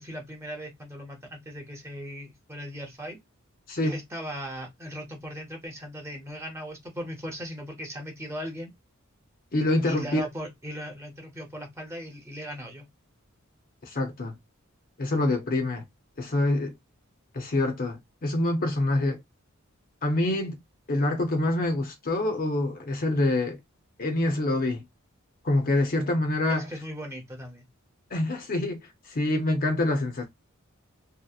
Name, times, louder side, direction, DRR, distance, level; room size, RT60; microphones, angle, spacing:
voice 1, 0.0-3.2 3.8-8.7 9.8-12.8 26.5-27.7, equal, 15° right, 0.7 m, -38 dB
voice 2, 9.5-10.3 13.9-14.4 15.0-15.8 16.2-16.7 17.3-19.2 20.0-20.6 20.9-23.6 24.0-24.8 25.4-26.7 28.1-30.3, left 2 dB, 45° left, 0.6 m, -26 dB
2.7 x 2.0 x 2.3 m
head